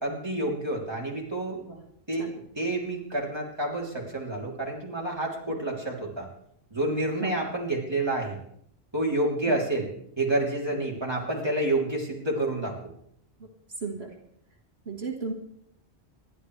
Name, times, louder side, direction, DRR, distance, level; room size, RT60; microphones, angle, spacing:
voice 1, 0.0-1.6 2.1-2.3 2.6-6.3 6.7-8.4 8.9-9.9 10.2-12.7, right 1 dB, 25° right, -3 dB, 3.3 m, -29 dB
voice 2, 13.8-14.2 14.9-15.3, right 4 dB, 80° right, 2 dB, 2.0 m, -35 dB
26.5 x 11.5 x 3.3 m, 0.70 s
omnidirectional pair, 1.1 m